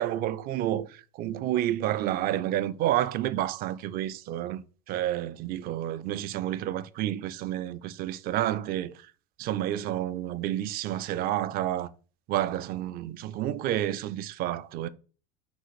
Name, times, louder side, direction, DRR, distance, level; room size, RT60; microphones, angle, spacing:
voice 1, 0.0-9.0 9.4-11.9 12.3-14.9, right 12 dB, 45° right, 0.4 m, -30 dB
4.2 x 2.5 x 4.1 m
supercardioid pair, 100°, 21 cm